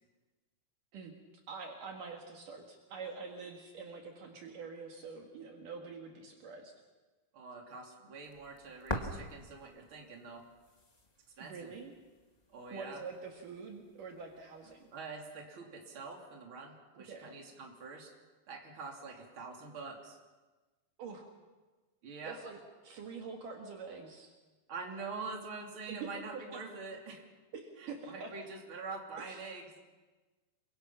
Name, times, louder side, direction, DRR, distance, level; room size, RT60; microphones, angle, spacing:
voice 1, 1.5-6.7 11.4-11.9 12.7-14.9 16.9-17.3 21.0-21.2 22.2-22.6 22.8-24.3 25.9-26.6 27.5-28.3 29.3-29.4, right 5 dB, 65° right, 1 dB, 3.4 m, -45 dB
voice 2, 7.3-10.4 11.4-11.7 12.5-13.0 14.9-18.1 18.5-20.2 22.0-22.4 24.7-27.2 27.8-29.6, right 4 dB, 35° right, 0 dB, 3.6 m, -45 dB
sound 1, 8.2-15.0, left 1 dB, 20° left, 1.1 m, -46 dB
28.5 x 23.5 x 5.8 m, 1.3 s
omnidirectional pair, 4.1 m